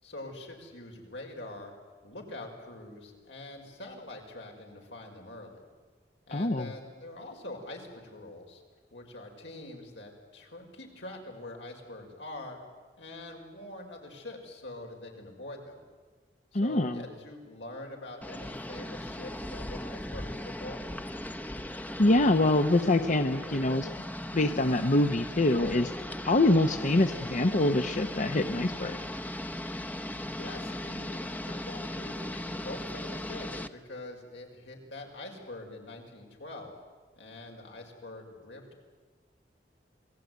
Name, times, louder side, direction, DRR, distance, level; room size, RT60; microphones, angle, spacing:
voice 1, 0.0-1.7 2.0-5.6 6.3-8.6 8.9-12.6 13.0-15.8 16.5-20.8 29.9-36.7 37.1-38.8, left 2 dB, 85° left, 1 dB, 5.5 m, -44 dB
voice 2, 6.3-6.7 16.5-17.0 22.0-23.9 24.3-25.9 26.2-29.0, left 2 dB, 45° left, 8 dB, 0.9 m, -25 dB
sound 1, 18.2-33.7, left 1 dB, 10° left, 0.8 m, -38 dB
28.0 x 20.0 x 9.4 m, 1.4 s
head